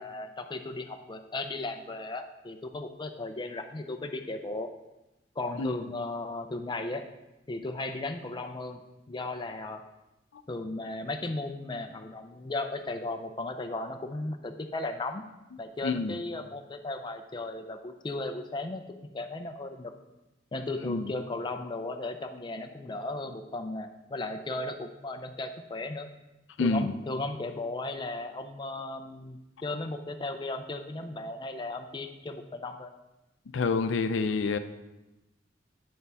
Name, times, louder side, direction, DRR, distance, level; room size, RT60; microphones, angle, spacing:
voice 1, 0.0-4.7 5.4-7.1 7.5-8.8 9.1-9.8 10.5-15.3 15.6-18.8 19.1-19.9 20.5-26.1 26.6-32.9, left 2 dB, 25° left, 6 dB, 0.5 m, -36 dB
voice 2, 15.8-16.1 20.8-21.1 26.6-26.9 33.5-34.6, left 4 dB, 75° left, 10 dB, 0.5 m, -27 dB
8.6 x 6.7 x 3.4 m, 0.99 s
head